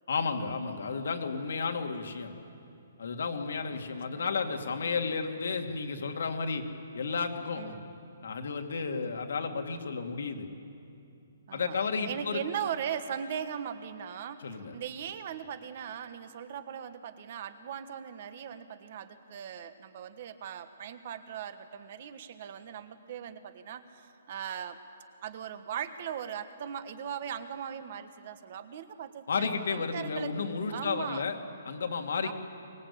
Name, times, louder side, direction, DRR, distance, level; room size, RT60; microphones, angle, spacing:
voice 1, 0.1-2.3 3.0-6.6 6.9-7.7 8.2-10.5 11.5-12.4 14.4-14.7 29.3-31.4 31.7-32.3, left 5 dB, 70° left, 5 dB, 2.3 m, -32 dB
voice 2, 7.5-7.9 11.5-11.8 12.0-24.9 25.2-30.3 30.7-31.3 32.2-32.3, right 8 dB, 40° right, 11 dB, 1.3 m, -39 dB
24.0 x 20.5 x 8.6 m, 2.7 s
hypercardioid pair, 170°, 0 cm